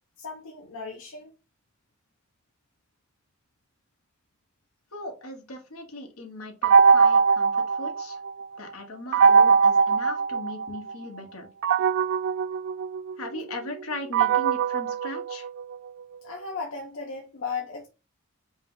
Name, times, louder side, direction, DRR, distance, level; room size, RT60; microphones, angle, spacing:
voice 1, 0.2-1.3 16.2-17.9, left 4 dB, 65° left, 0.7 m, -36 dB
voice 2, 4.9-8.2 8.6-11.5 13.2-15.5, left 2 dB, 80° left, 1.3 m, -38 dB
sound 1, 6.6-8.4 9.1-10.9 11.6-15.9, right 5 dB, 60° right, 0.3 m, -21 dB
5.1 x 2.2 x 3.8 m
head